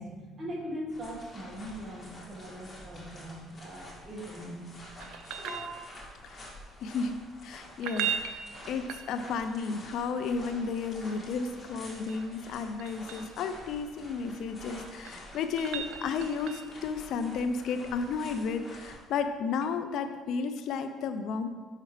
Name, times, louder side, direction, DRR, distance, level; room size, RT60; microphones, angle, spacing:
voice 1, 0.0-4.6 5.1-5.7, equal, 25° right, -3 dB, 1.7 m, -41 dB
People walking on small stones, 0.9-19.0, left 1 dB, 25° left, 2.0 m, -48 dB
sound 1, 5.0-6.2 7.7-9.5 11.7-13.3 14.7-16.8 19.6-19.7, right 8 dB, 80° right, 0.5 m, -38 dB
voice 2, 6.8-7.2 7.4-21.5, left 5 dB, 65° left, 9 dB, 0.4 m, -33 dB
7.4 x 5.7 x 3.3 m, 1.4 s
cardioid pair, 115°, 0 cm